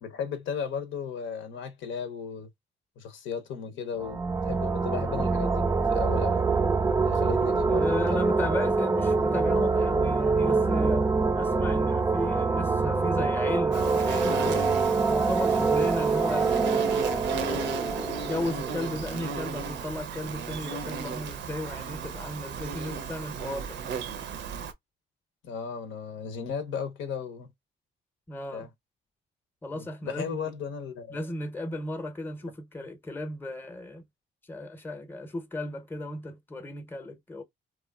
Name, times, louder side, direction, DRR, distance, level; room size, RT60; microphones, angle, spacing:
voice 1, 0.0-2.5 3.0-4.2 4.5-6.4 7.0-8.3 25.4-27.5 28.5-28.7 29.7-31.2, left 7 dB, 75° left, 0.7 m, -35 dB
sound 1, 4.0-19.5, right 4 dB, 15° right, 0.3 m, -25 dB
voice 2, 7.7-11.1 11.3-16.5 17.0-23.8 28.3-28.7 29.6-30.6 31.1-34.0 34.4-37.4, left 1 dB, 10° left, 0.7 m, -35 dB
Insect, 13.7-24.7, right 5 dB, 65° right, 0.5 m, -35 dB
2.9 x 2.3 x 2.2 m
cardioid pair, 90°, 20 cm